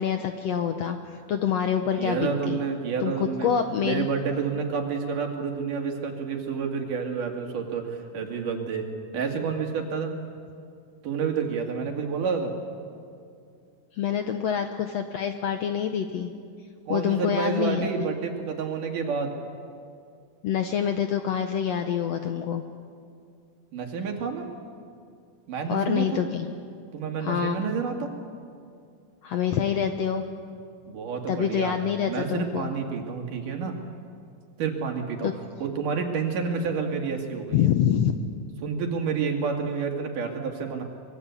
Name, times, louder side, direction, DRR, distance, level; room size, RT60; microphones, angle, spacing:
voice 1, 0.0-2.6 3.0-3.1 3.4-4.1 13.9-16.3 16.9-17.9 20.4-22.6 25.7-26.5 27.2-27.6 29.2-30.2 31.3-32.7 35.2-35.3 37.5-38.1, left 8 dB, 70° left, 6 dB, 1.6 m, -26 dB
voice 2, 2.0-3.5 3.8-8.9 9.1-10.1 11.0-12.5 16.9-19.3 23.7-24.5 25.5-26.2 26.9-28.1 30.9-31.7 32.1-33.8 34.6-35.3 35.6-37.7 38.6-40.8, right 5 dB, 70° right, 3 dB, 3.7 m, -29 dB
24.5 x 22.0 x 8.3 m, 2.4 s
omnidirectional pair, 3.9 m